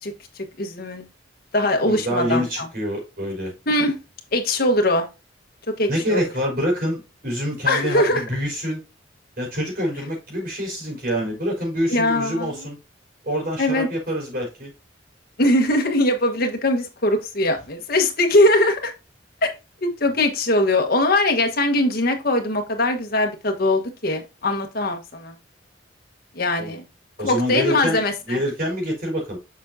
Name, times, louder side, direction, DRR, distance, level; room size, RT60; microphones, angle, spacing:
voice 1, 0.0-1.1 1.5-2.7 3.7-4.0 4.3-5.1 5.8-6.2 7.7-8.2 11.9-12.7 13.6-13.9 15.4-18.9 19.4-19.5 19.8-25.3 26.3-26.8 27.2-28.4, left 1 dB, 55° left, 4 dB, 1.4 m, -21 dB
voice 2, 1.9-3.5 5.9-8.8 9.4-12.8 13.2-14.7 26.6-26.8 27.2-28.0 28.3-29.4, equal, 55° right, -1 dB, 4.4 m, -26 dB
7.3 x 6.2 x 2.7 m, 0.27 s
head